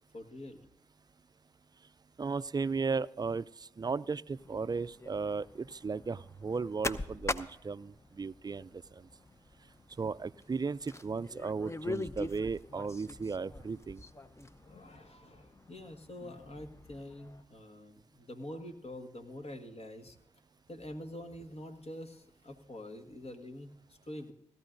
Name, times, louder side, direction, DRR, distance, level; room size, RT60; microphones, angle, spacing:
voice 1, 0.1-0.6 14.6-20.2 20.7-24.3, left 1 dB, 50° left, 5 dB, 1.7 m, -46 dB
voice 2, 2.2-3.5 3.8-8.7 10.0-14.0, right 4 dB, 30° right, 17 dB, 0.4 m, -35 dB
sound 1, 4.4-17.4, left 2 dB, 20° left, 0.8 m, -44 dB
17.5 x 14.0 x 2.6 m, 0.84 s
supercardioid pair, 40°, 13 cm